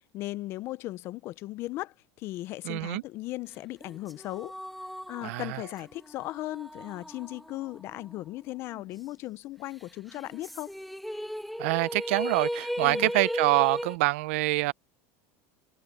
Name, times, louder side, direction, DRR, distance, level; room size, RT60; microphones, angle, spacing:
voice 1, 0.1-4.5 5.1-10.7 12.8-13.1, left 17 dB, 35° left, 0.4 m, -37 dB
voice 2, 2.6-3.0 5.2-5.6 11.6-14.7, right 21 dB, 70° right, 0.5 m, -26 dB
sound 1, 3.8-8.4 8.7-8.8 10.1-14.0, equal, ahead, 1.5 m, -36 dB
cardioid pair, 175°, 8 cm